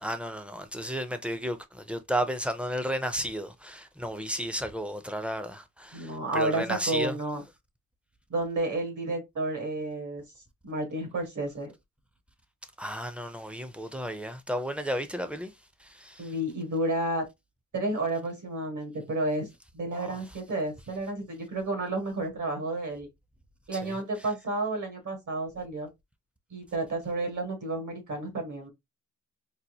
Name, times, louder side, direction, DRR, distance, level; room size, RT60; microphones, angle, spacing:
voice 1, 0.0-7.2 12.8-15.5 15.8-16.3 20.0-20.2 23.7-24.0, equal, 5° right, 0.4 m, -33 dB
voice 2, 5.9-7.4 8.3-10.2 10.6-11.7 16.2-17.2 17.7-19.5 19.7-23.1 23.7-25.9 26.5-28.7, right 2 dB, 70° right, 1.7 m, -31 dB
4.1 x 2.4 x 2.7 m
wide cardioid pair, 155°, 31 cm